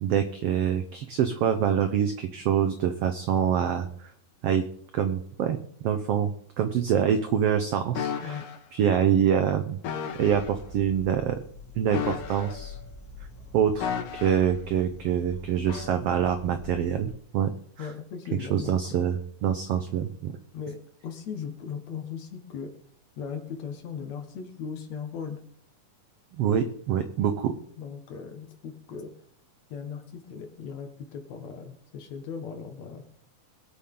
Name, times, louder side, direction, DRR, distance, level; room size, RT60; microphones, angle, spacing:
voice 1, 0.0-3.9 4.4-4.6 4.9-5.6 5.8-8.4 8.7-9.8 10.1-11.4 11.8-12.8 13.5-17.5 17.8-17.9 18.4-20.3 26.4-27.5, right 8 dB, 90° right, 9 dB, 1.3 m, -25 dB
sound 1, 8.0-8.6 9.8-10.5 11.9-12.8 13.8-14.6 15.7-15.9, left 8 dB, 80° left, 2.9 m, -33 dB
sound 2, 10.3-17.1, left 4 dB, 35° left, 3.0 m, -45 dB
voice 2, 17.8-19.0 20.5-22.7 23.2-25.4 27.8-29.1 29.7-33.0, left 6 dB, 60° left, 6 dB, 2.5 m, -38 dB
22.0 x 8.6 x 3.8 m, 0.64 s
omnidirectional pair, 3.8 m